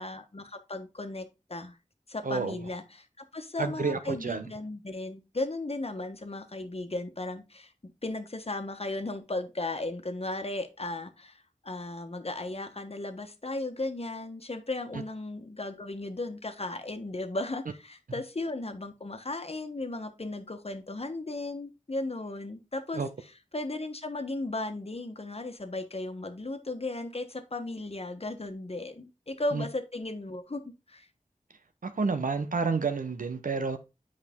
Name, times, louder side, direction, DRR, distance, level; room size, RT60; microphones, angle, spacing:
voice 1, 0.0-1.8 2.1-3.1 3.3-23.0 23.5-30.6 30.9-31.1, left 2 dB, 50° left, 1.2 m, -36 dB
voice 2, 2.2-2.6 3.6-4.5 22.9-23.1 29.5-29.7 31.8-33.8, right 4 dB, 85° right, 0.9 m, -30 dB
8.4 x 5.1 x 3.6 m
wide cardioid pair, 50°, 14 cm